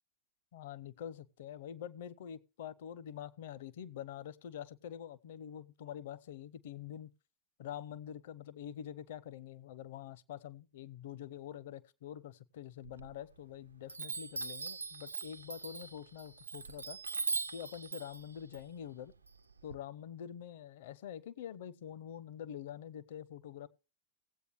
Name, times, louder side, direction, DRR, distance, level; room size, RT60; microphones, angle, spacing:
voice 1, 0.5-7.1 7.6-17.0 17.5-19.1 19.6-23.7, left 9 dB, 55° left, 0.7 m, -46 dB
Chime, 12.8-13.5 13.9-19.7, right 4 dB, 75° right, 0.5 m, -41 dB
17.0 x 8.2 x 3.1 m
figure-of-eight pair, 90°, 0 cm